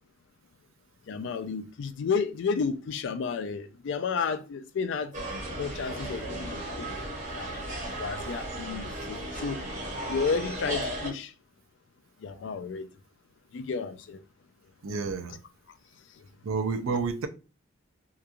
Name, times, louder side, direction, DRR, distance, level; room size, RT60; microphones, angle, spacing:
voice 1, 1.1-5.1 5.6-7.1 7.4-7.6 8.0-9.6 10.1-11.3 12.2-12.9 13.5-14.2 16.2-16.3, left 5 dB, 60° left, 0.3 m, -32 dB
sound 1, 5.1-11.1, right 1 dB, 35° right, 0.8 m, -35 dB
voice 2, 14.8-15.4 16.4-17.3, right 4 dB, 75° right, 0.4 m, -30 dB
2.9 x 2.3 x 2.4 m
head